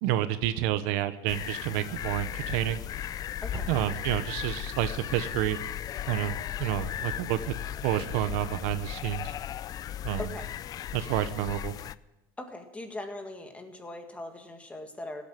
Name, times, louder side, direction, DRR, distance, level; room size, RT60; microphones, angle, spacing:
voice 1, 0.0-2.8 3.7-5.6 6.1-7.4 7.8-9.3 10.0-10.3 10.9-11.7, right 13 dB, 70° right, 12 dB, 0.9 m, -29 dB
sound 1, 1.3-12.0, left 11 dB, 35° left, 0.4 m, -36 dB
sound 2, 3.5-4.0, right 3 dB, 30° right, 3.3 m, -38 dB
voice 2, 12.4-15.2, left 2 dB, 10° left, 5 dB, 1.9 m, -40 dB
16.5 x 8.5 x 7.6 m, 1.0 s
supercardioid pair, 135°, 12 cm